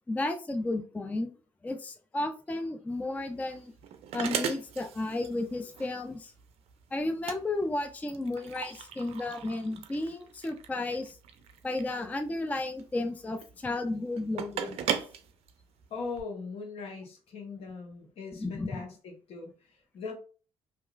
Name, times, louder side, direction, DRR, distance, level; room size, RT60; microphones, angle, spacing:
voice 1, 0.1-1.3 1.6-3.7 4.1-6.3 6.9-11.2 11.6-14.9 18.4-18.8, left 2 dB, 15° left, 6 dB, 0.3 m, -33 dB
sound 1, 2.9-16.2, right 8 dB, 65° right, 0.4 m, -39 dB
voice 2, 15.9-20.1, left 4 dB, 60° left, 1 dB, 1.0 m, -40 dB
2.8 x 2.4 x 2.3 m, 0.37 s
supercardioid pair, 65°, 11 cm